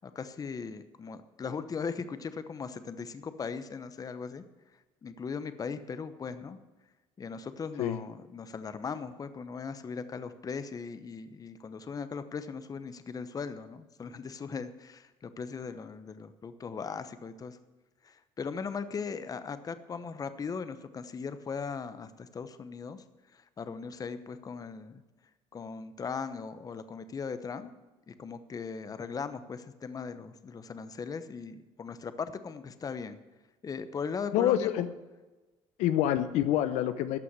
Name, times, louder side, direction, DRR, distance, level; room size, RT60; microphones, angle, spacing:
voice 1, 0.0-4.4 5.0-6.6 7.2-17.6 18.0-23.0 23.3-25.0 25.5-27.7 28.1-33.2 33.6-34.7, left 5 dB, 30° left, 12 dB, 0.9 m, -38 dB
voice 2, 34.3-34.9 35.8-37.2, left 12 dB, 85° left, 11 dB, 0.8 m, -26 dB
13.5 x 5.9 x 9.6 m, 1.2 s
cardioid pair, 105°, 12 cm